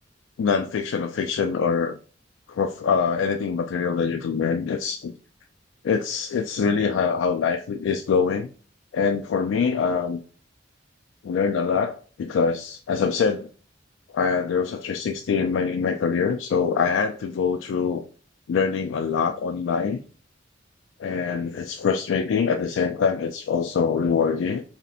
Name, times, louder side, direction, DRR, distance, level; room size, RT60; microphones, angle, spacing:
voice 1, 0.4-1.9 2.5-5.1 5.8-8.5 8.9-10.2 11.2-13.5 14.1-18.0 18.5-20.0 21.0-24.6, left 5 dB, 80° left, 6 dB, 0.3 m, -24 dB
3.2 x 2.7 x 4.0 m, 0.40 s
head